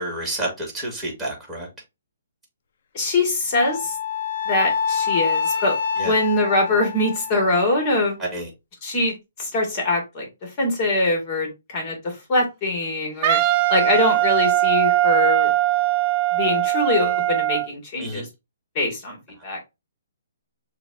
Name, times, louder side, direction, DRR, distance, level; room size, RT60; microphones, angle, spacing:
voice 1, 0.0-1.7 6.0-6.2 8.2-8.5 18.0-18.3, right 1 dB, ahead, 1.9 m, -29 dB
voice 2, 2.9-4.0 4.5-8.2 8.8-13.4 13.7-15.5 16.3-18.3 18.8-19.2 19.4-19.6, left 2 dB, 30° left, 1.8 m, -23 dB
Wind instrument woodwind instrument, 3.6-7.9, left 6 dB, 55° left, 0.5 m, -26 dB
Wind instrument woodwind instrument 2, 13.2-17.7, right 16 dB, 35° right, 0.3 m, -20 dB
6.7 x 2.4 x 2.6 m
hypercardioid pair, 150°, 0 cm